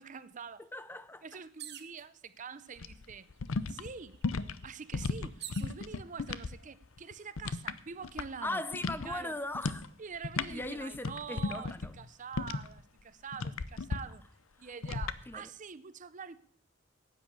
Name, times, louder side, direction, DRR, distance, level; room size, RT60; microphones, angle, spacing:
voice 1, 0.0-0.7 1.2-3.3 3.7-4.2 4.6-8.6 9.0-9.4 10.0-14.3 14.6-16.4, right 6 dB, 40° right, 0.6 m, -45 dB
voice 2, 0.6-1.2 8.4-9.8 10.5-11.9 14.6-14.7 15.3-15.5, left 2 dB, 10° left, 0.4 m, -39 dB
sound 1, 1.6-2.0 2.9-3.0 3.4-5.7 6.5-7.0, right 12 dB, 55° right, 1.0 m, -47 dB
sound 2, 2.8-6.6 6.8-8.5 8.7-9.1 9.5-9.9 10.2-12.8 13.3-14.0 14.8-15.2, left 4 dB, 90° left, 0.7 m, -35 dB
10.0 x 9.0 x 8.5 m
head